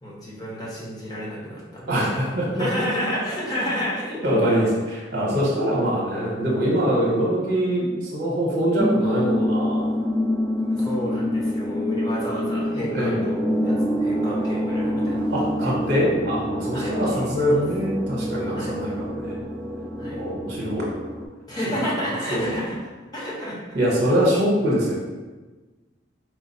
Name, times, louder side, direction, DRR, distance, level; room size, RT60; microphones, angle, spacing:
voice 1, 0.0-1.9 2.6-4.2 5.3-5.4 10.6-13.4 13.6-15.3 15.6-15.7 16.7-17.6 18.5-18.7 20.0-20.2 21.5-23.6, equal, 20° left, -6 dB, 0.9 m, -31 dB
voice 2, 1.9-3.1 4.2-9.9 12.9-13.2 15.3-19.4 20.1-20.8 21.7-21.8 22.3-22.4 23.7-24.9, equal, 60° right, -4 dB, 0.9 m, -23 dB
sound 1, 8.8-21.3, equal, 5° right, 0.3 m, -26 dB
4.6 x 2.0 x 4.1 m, 1.3 s
head